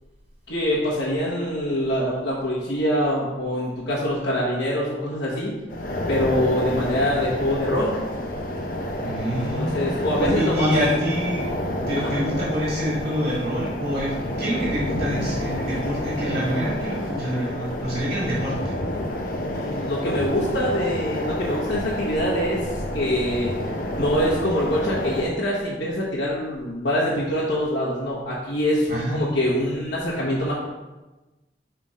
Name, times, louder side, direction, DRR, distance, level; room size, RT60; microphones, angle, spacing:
voice 1, 0.5-5.5 6.1-8.0 9.5-10.7 11.9-12.1 19.3-22.7 22.9-23.5 23.9-30.5, equal, 85° left, -9 dB, 1.2 m, -24 dB
sound 1, 5.7-25.2, left 1 dB, 50° left, 0.7 m, -29 dB
voice 2, 9.0-11.5 11.9-18.7 28.9-29.2, equal, 50° right, -7 dB, 1.6 m, -26 dB
5.4 x 3.6 x 4.9 m, 1.1 s
head